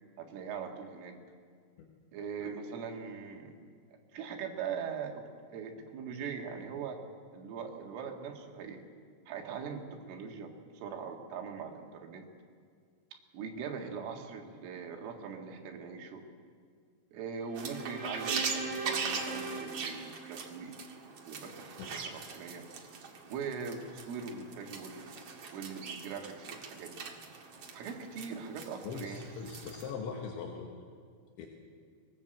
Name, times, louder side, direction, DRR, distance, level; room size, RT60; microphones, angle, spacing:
voice 1, 0.2-1.2 2.1-3.6 4.1-7.0 7.3-8.9 9.3-12.3 13.3-16.2 17.1-20.7 21.3-22.7 23.3-25.1 25.5-26.9 27.7-29.2, right 6 dB, 85° right, 3 dB, 4.5 m, -41 dB
sound 1, 17.4-20.8, right 3 dB, 35° right, 1.4 m, -40 dB
sound 2, 17.5-29.9, right 5 dB, 60° right, 1.6 m, -41 dB
voice 2, 28.8-30.7 31.4-31.5, left 5 dB, 75° left, 1 dB, 3.7 m, -40 dB
23.5 x 19.0 x 8.0 m, 2.1 s
omnidirectional pair, 5.6 m